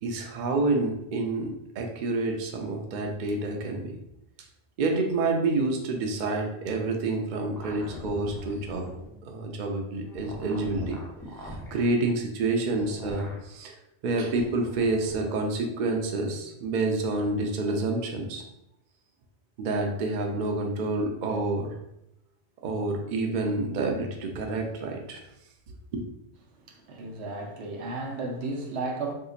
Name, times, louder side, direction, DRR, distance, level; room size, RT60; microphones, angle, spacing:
voice 1, 0.0-3.9 4.8-8.9 9.2-11.0 11.4-13.7 14.0-18.4 19.6-21.7 22.6-25.2 25.9-26.0, right 2 dB, 55° right, 2 dB, 0.6 m, -28 dB
sound 1, 7.6-9.1 10.1-11.8 12.7-13.4 14.2-15.2, left 1 dB, 5° left, 0.5 m, -41 dB
voice 2, 26.6-29.1, right 3 dB, 75° right, 1 dB, 0.9 m, -34 dB
3.8 x 2.8 x 2.4 m, 0.83 s
omnidirectional pair, 1.1 m